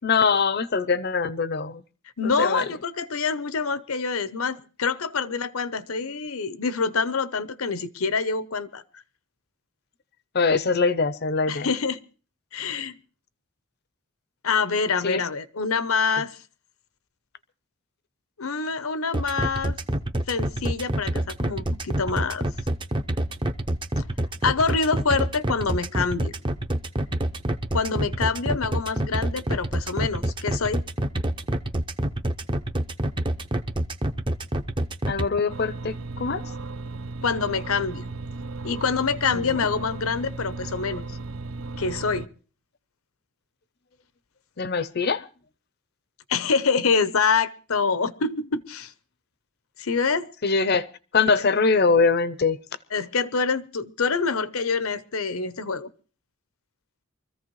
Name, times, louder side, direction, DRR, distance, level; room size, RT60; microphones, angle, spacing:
voice 1, 0.0-1.8 2.2-2.7 10.3-11.7 15.0-15.2 35.1-36.4 39.3-39.7 44.6-45.2 50.4-50.9 51.1-52.6, left 4 dB, 50° left, 0.6 m, -23 dB
voice 2, 2.2-9.0 11.5-12.0 12.5-12.9 14.4-16.4 18.4-19.8 20.3-22.5 24.0-24.1 24.4-26.3 27.7-30.8 37.2-38.0 38.6-41.0 41.8-42.3 46.3-48.9 49.8-50.3 51.3-51.4 52.9-55.9, left 5 dB, 80° left, 0.8 m, -26 dB
sound 1, 19.1-35.3, right 1 dB, 20° right, 0.7 m, -26 dB
sound 2, 35.5-42.3, right 3 dB, 70° right, 0.6 m, -35 dB
24.0 x 14.5 x 3.1 m
head